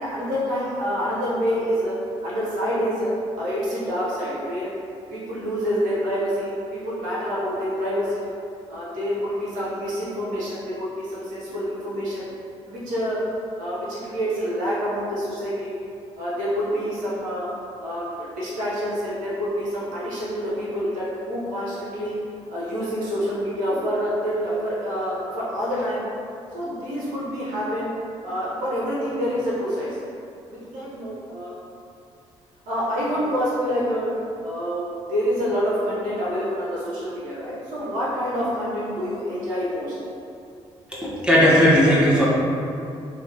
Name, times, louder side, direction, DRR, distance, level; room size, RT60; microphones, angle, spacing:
voice 1, 0.0-1.9 2.2-4.7 5.1-8.3 8.7-12.3 12.7-13.2 13.6-15.7 16.2-17.5 17.8-22.1 22.5-26.0 26.5-27.9 28.2-30.0 30.5-31.6 32.7-34.1 34.4-39.9, equal, 70° right, -7 dB, 0.8 m, -27 dB
voice 2, 40.9-42.3, equal, 5° right, -8 dB, 0.9 m, -17 dB
2.9 x 2.4 x 3.4 m, 2.6 s
hypercardioid pair, 45°, 14 cm